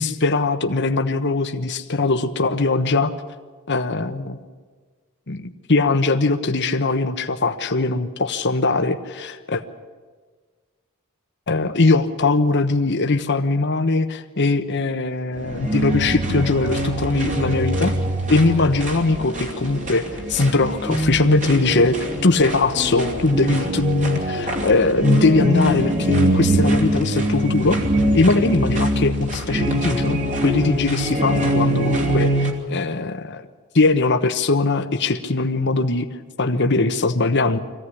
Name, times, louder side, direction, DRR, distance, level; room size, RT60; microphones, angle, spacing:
voice 1, 0.0-3.1 3.7-4.4 5.3-9.6 11.5-17.9 18.3-27.8 28.1-33.4 33.7-36.1 36.4-37.6, left 3 dB, 55° left, 7 dB, 1.2 m, -20 dB
sound 1, 15.3-32.5, right 1 dB, 35° right, 3.1 m, -23 dB
23.5 x 16.0 x 9.9 m, 1.4 s
head